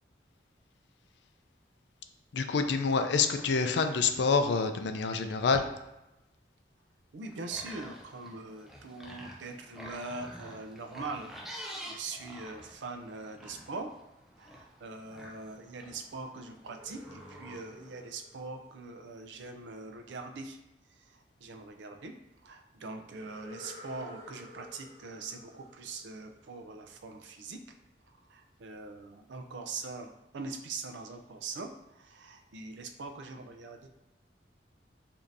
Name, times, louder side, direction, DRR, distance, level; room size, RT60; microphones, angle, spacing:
voice 1, 2.3-5.6, left 5 dB, 75° left, 7 dB, 0.4 m, -27 dB
voice 2, 7.1-11.4 11.8-14.0 14.4-20.6 21.4-22.1 22.4-27.6 28.3-33.9, right 3 dB, 85° right, 5 dB, 0.4 m, -42 dB
sound 1, 7.2-18.0, equal, ahead, 0.4 m, -49 dB
sound 2, 16.5-19.5 23.2-26.9, left 1 dB, 35° right, 1.2 m, -53 dB
5.0 x 2.7 x 2.6 m, 0.91 s
head